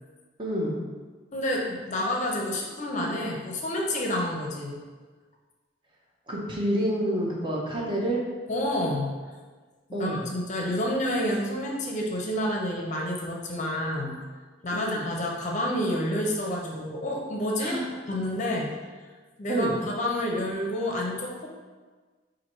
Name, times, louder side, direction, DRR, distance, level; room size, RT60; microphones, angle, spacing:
voice 1, 0.4-0.8 6.3-8.2 9.9-10.2 14.7-15.1 17.6-17.9 19.5-19.7, right 1 dB, 25° right, -3 dB, 0.7 m, -28 dB
voice 2, 1.3-4.8 8.5-9.1 9.9-14.2 14.6-17.8 18.1-18.7 19.4-21.5, left 1 dB, 40° left, -1 dB, 0.6 m, -29 dB
4.3 x 2.6 x 4.4 m, 1.4 s
head